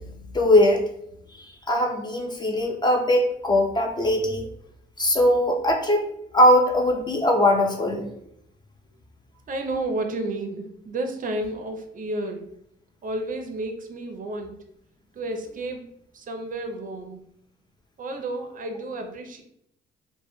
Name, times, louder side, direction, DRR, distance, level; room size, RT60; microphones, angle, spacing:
voice 1, 0.3-0.8 1.4-4.5 5.0-6.0 6.3-8.1, left 1 dB, 20° left, 2 dB, 0.4 m, -20 dB
voice 2, 9.5-12.5 13.0-14.5 15.1-15.9 16.1-17.2 18.0-19.4, right 2 dB, 45° right, 4 dB, 0.4 m, -31 dB
2.1 x 2.0 x 2.9 m, 0.74 s
cardioid pair, 90°, 20 cm